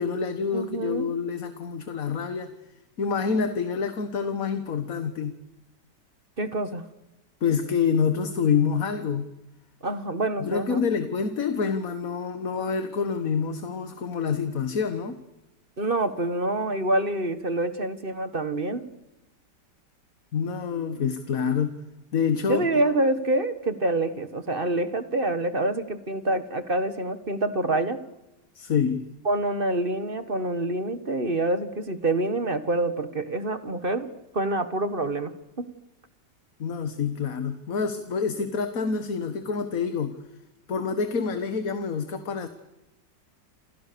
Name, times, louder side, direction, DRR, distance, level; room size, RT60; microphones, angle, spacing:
voice 1, 0.0-2.5 3.0-5.4 7.4-9.3 10.4-15.2 20.3-21.8 22.1-22.8 28.6-29.1 36.6-40.2 40.7-42.5, left 6 dB, 50° left, 9 dB, 1.8 m, -27 dB
voice 2, 0.5-1.1 6.4-6.8 9.8-10.8 15.8-18.8 22.4-28.0 29.2-34.1 34.3-35.3 35.6-35.7, right 2 dB, 30° right, 11 dB, 1.7 m, -26 dB
28.5 x 28.5 x 6.9 m, 0.99 s
omnidirectional pair, 1.9 m